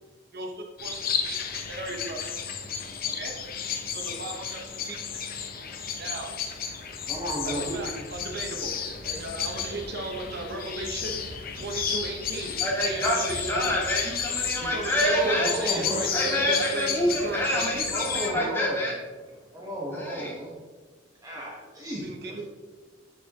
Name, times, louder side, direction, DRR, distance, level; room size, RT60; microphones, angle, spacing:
voice 1, 0.3-2.2 3.1-3.3 3.9-5.2 6.0-6.3 7.4-8.7 9.0-11.2 11.5-12.6 12.8-13.7 14.7-16.4 16.7-17.7 18.3-18.5 22.0-22.4, right 2 dB, 55° right, 1 dB, 1.1 m, -36 dB
sound 1, 0.8-18.3, left 7 dB, 50° left, 0.9 m, -32 dB
voice 2, 7.1-7.9 15.0-16.1 17.9-18.8 19.5-20.5 21.2-22.4, equal, 20° right, -4 dB, 1.2 m, -33 dB
voice 3, 12.6-15.7 16.1-19.0 19.9-20.4, equal, 10° left, -4 dB, 2.3 m, -27 dB
10.5 x 7.1 x 2.9 m, 1.4 s
head